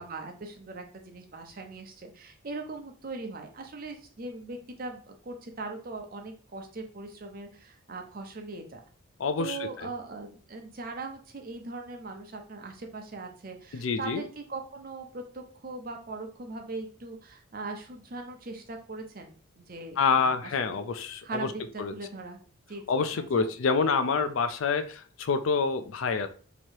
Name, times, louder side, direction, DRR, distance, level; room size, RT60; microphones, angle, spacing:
voice 1, 0.0-8.8 9.4-20.8 21.2-22.4 22.7-23.5, right 3 dB, 45° right, 3 dB, 0.7 m, -40 dB
voice 2, 9.2-9.9 13.7-14.2 20.0-21.5 21.8-21.9 22.9-26.3, left 5 dB, 75° left, 10 dB, 0.4 m, -27 dB
3.0 x 2.8 x 4.5 m, 0.42 s
head